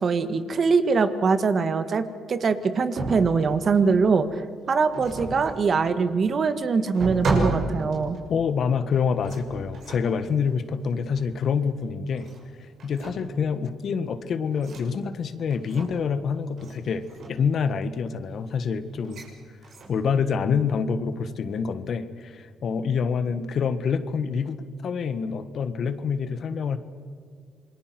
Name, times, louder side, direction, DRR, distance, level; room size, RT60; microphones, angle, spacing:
voice 1, 0.0-4.4 4.7-8.2, right 5 dB, 45° right, 11 dB, 1.7 m, -23 dB
sound 1, 2.9-4.1 4.9-5.7 6.4-6.5 6.9-8.4 9.2-10.2 11.2-11.4 12.1-12.5 12.8-13.4 14.5-14.9 15.5-16.2 16.6-16.8 17.0-17.4 19.0-19.3 19.6-20.0, right 2 dB, 65° right, 6.4 m, -32 dB
voice 2, 8.3-12.3 12.6-19.2 19.9-24.6 24.8-26.8, left 6 dB, 60° left, 12 dB, 1.6 m, -26 dB
28.0 x 21.5 x 6.1 m, 2.3 s
cardioid pair, 90°, 0 cm